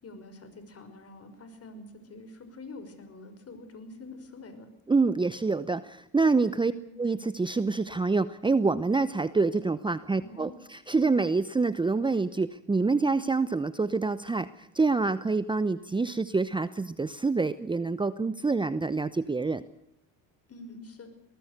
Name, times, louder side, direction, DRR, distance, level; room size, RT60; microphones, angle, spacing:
voice 1, 0.0-4.7 6.6-6.9 10.2-10.6 20.5-21.1, left 2 dB, 40° left, 9 dB, 5.8 m, -46 dB
voice 2, 4.9-6.7 7.0-14.5 14.7-19.6, right 3 dB, 15° right, 14 dB, 0.8 m, -26 dB
23.5 x 19.0 x 6.7 m, 0.80 s
supercardioid pair, 100°, 38 cm